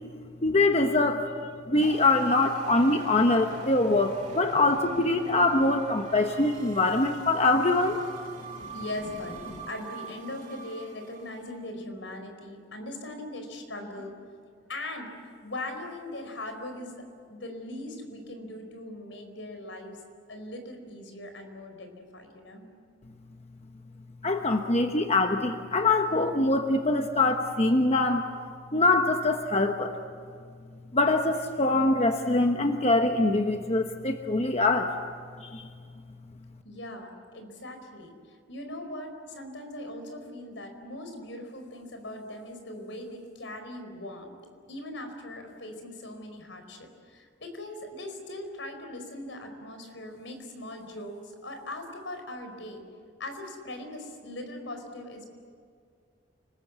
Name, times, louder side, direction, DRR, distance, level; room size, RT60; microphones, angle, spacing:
voice 1, 0.4-1.3 1.7-8.0 24.2-28.2 28.7-30.0 30.9-34.9 35.4-35.7, left 2 dB, 35° left, 5 dB, 1.1 m, -24 dB
sound 1, 1.8-11.4, right 3 dB, 40° right, 2.4 m, -43 dB
voice 2, 8.4-14.3 14.6-15.1 15.4-17.0 17.3-20.0 20.3-22.7 36.6-38.1 38.5-44.3 44.7-52.8 53.2-55.3, left 1 dB, 80° left, 5 dB, 4.7 m, -40 dB
30.0 x 20.5 x 8.2 m, 2.2 s
head